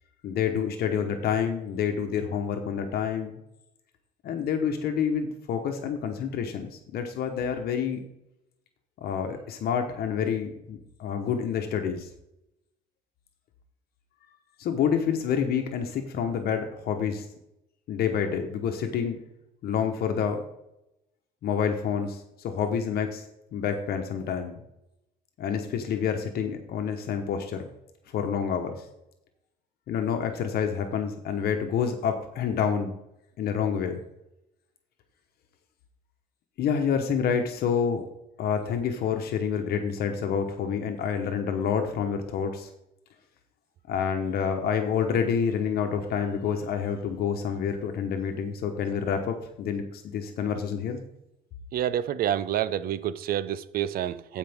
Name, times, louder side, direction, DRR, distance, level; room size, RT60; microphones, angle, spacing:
voice 1, 0.2-3.4 4.2-8.0 9.0-12.1 14.6-17.3 17.9-19.2 19.6-20.4 21.4-23.2 23.5-24.6 25.4-27.6 28.1-28.8 29.9-33.0 33.4-34.0 36.6-38.1 38.4-42.7 43.9-51.0, left 7 dB, 65° left, 1.1 m, -28 dB
voice 2, 51.7-54.4, right 11 dB, 60° right, 0.6 m, -28 dB
14.5 x 5.2 x 3.6 m
cardioid pair, 110°, 17 cm